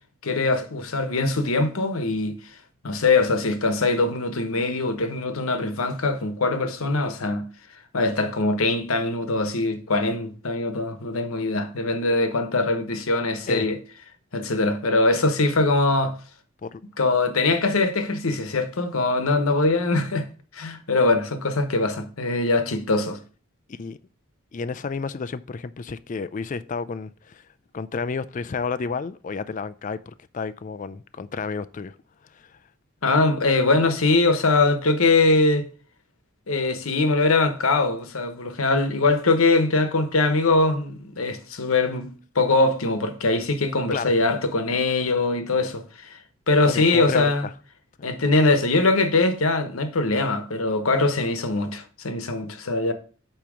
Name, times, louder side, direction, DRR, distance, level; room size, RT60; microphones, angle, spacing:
voice 1, 0.2-2.4 2.8-7.4 7.9-13.8 14.3-16.2 17.0-20.3 20.5-23.2 33.0-35.7 36.5-42.1 42.3-46.2 46.5-47.5 48.0-52.9, left 3 dB, 80° left, 1.0 m, -22 dB
voice 2, 24.5-27.5 27.7-32.0 32.3-32.6 43.9-44.1 46.7-47.5, left 4 dB, 35° left, 0.4 m, -31 dB
8.5 x 3.0 x 6.1 m
head